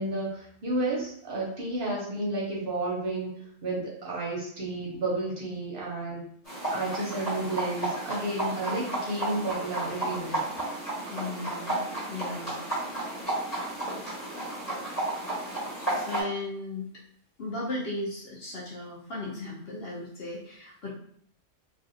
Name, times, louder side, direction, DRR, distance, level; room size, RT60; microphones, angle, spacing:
voice 1, 0.0-3.4 3.6-6.2 6.7-10.4, right 2 dB, 55° right, -4 dB, 0.8 m, -31 dB
sound 1, 6.5-16.2, right 2 dB, 30° left, 1.2 m, -32 dB
voice 2, 11.1-11.8 12.1-12.6 16.0-16.9 17.4-20.9, left 2 dB, 60° left, -4 dB, 0.7 m, -36 dB
2.5 x 2.4 x 2.5 m, 0.64 s
omnidirectional pair, 1.3 m